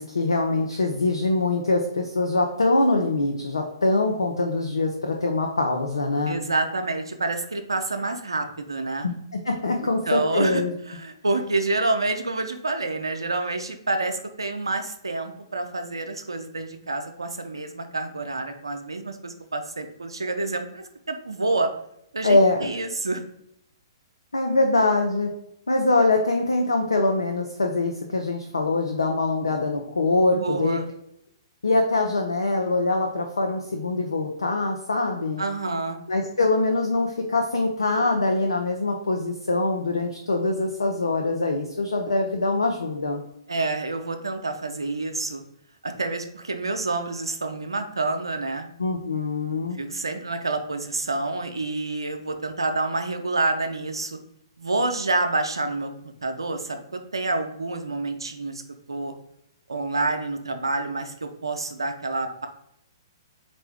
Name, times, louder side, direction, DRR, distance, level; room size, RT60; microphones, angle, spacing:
voice 1, 0.0-6.4 9.0-10.7 22.2-22.7 24.3-25.3 25.7-30.8 31.6-35.4 36.1-43.2 48.8-49.8, left 2 dB, 80° left, 2 dB, 0.5 m, -23 dB
voice 2, 6.3-9.1 10.1-21.7 22.1-23.2 30.3-30.9 35.4-36.0 43.5-45.4 45.8-48.7 49.7-54.2 54.6-58.6 58.9-59.1 59.7-62.5, right 2 dB, 85° right, 6 dB, 0.5 m, -28 dB
4.4 x 2.6 x 3.4 m, 0.75 s
figure-of-eight pair, 120°, 2 cm